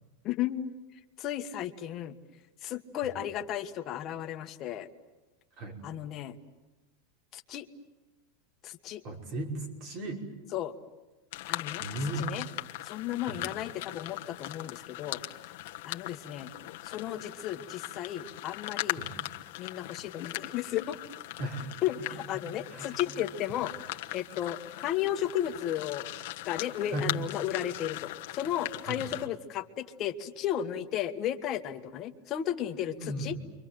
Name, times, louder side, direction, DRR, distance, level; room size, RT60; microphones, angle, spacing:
voice 1, 0.2-0.7 1.2-2.2 2.6-4.9 5.8-6.4 7.3-7.7 8.6-9.0 10.5-10.7 11.5-11.8 12.2-12.5 12.8-15.2 15.8-16.5 16.8-19.0 19.6-21.0 21.8-23.7 24.1-26.1 26.4-33.3, left 11 dB, 30° left, 6 dB, 1.5 m, -34 dB
voice 2, 9.0-10.2 11.8-12.3 13.2-13.4 19.0-19.1 21.4-22.4 22.7-23.1 26.9-27.1 28.9-29.0 33.0-33.4, right 1 dB, 40° right, 2 dB, 5.6 m, -37 dB
sound 1, 11.3-29.3, left 18 dB, 65° left, 1.1 m, -40 dB
30.0 x 24.5 x 7.7 m, 1.2 s
supercardioid pair, 160°, 0 cm